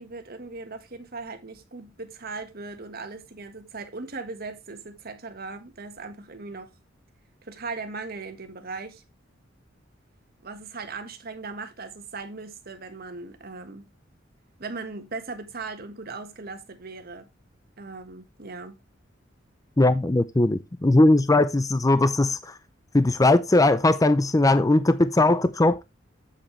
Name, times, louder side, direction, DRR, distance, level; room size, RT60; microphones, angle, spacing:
voice 1, 0.0-6.7 7.4-9.0 10.4-13.8 14.6-17.3 17.8-18.8, right 3 dB, 50° right, 1.5 m, -38 dB
voice 2, 19.8-22.5 22.9-25.8, left 2 dB, 20° left, 0.5 m, -19 dB
7.8 x 7.3 x 3.2 m
head